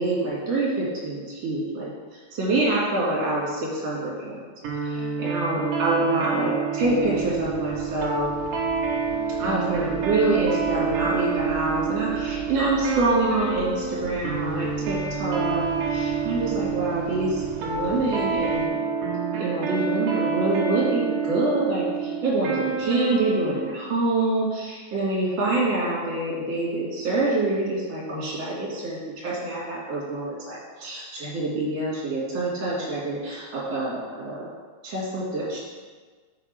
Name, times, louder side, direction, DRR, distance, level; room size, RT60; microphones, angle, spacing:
voice 1, 0.0-4.4 4.7-8.3 9.4-18.8 19.3-34.5 34.8-35.6, right 2 dB, 40° right, -7 dB, 3.3 m, -26 dB
sound 1, 4.6-23.8, right 5 dB, 60° right, 2.5 m, -28 dB
sound 2, 6.8-18.7, right 5 dB, 85° right, 3.2 m, -41 dB
7.3 x 4.9 x 6.3 m, 1.4 s
omnidirectional pair, 5.4 m